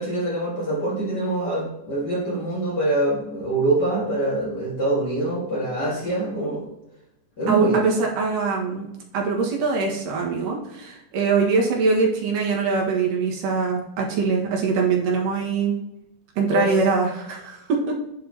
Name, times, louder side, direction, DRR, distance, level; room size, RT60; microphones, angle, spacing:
voice 1, 0.0-6.7 7.4-7.8 16.5-16.7, right 2 dB, 40° left, -5 dB, 1.9 m, -24 dB
voice 2, 7.5-8.9 9.1-15.8 16.4-18.0, right 4 dB, 85° right, -1 dB, 3.1 m, -23 dB
10.0 x 4.4 x 2.8 m, 0.92 s
omnidirectional pair, 3.8 m